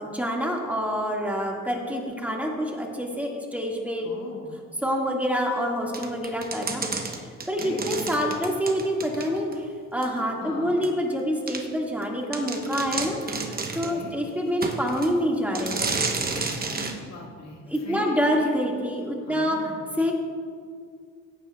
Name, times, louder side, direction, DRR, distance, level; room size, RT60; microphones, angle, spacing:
voice 1, 0.0-4.1 4.8-6.8 7.5-9.7 9.9-16.0 17.7-20.1, equal, 5° right, -1 dB, 1.9 m, -27 dB
voice 2, 4.0-4.5 7.6-7.8 10.4-11.0 13.6-14.2 16.1-16.4 16.7-18.1 19.2-19.9, left 3 dB, 60° left, -1 dB, 1.9 m, -41 dB
sound 1, 5.9-9.6 10.0-10.1 10.8-10.9 11.5-11.6 12.0-12.1 12.3-14.0 14.6-15.1 15.5-17.0, right 4 dB, 30° right, 1.0 m, -31 dB
16.5 x 9.5 x 2.4 m, 2.1 s
cardioid pair, 90°, 30 cm